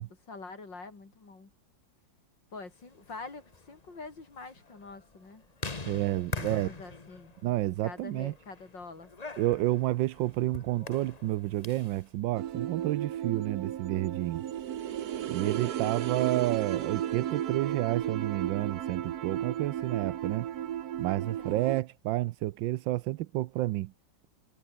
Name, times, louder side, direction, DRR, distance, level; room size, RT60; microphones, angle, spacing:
voice 1, 0.3-1.5 2.5-5.4 6.3-7.3 7.8-9.1 15.4-15.8 21.4-21.6, left 3 dB, 70° left, 5.0 m, -45 dB
sound 1, 2.9-12.0, left 3 dB, 20° left, 1.4 m, -44 dB
voice 2, 5.9-6.7 7.4-8.3 9.4-14.4 15.3-20.5 21.0-23.9, right 16 dB, 80° right, 1.3 m, -30 dB
sound 2, 12.3-21.8, right 10 dB, 60° right, 1.3 m, -34 dB
omnidirectional pair, 2.1 m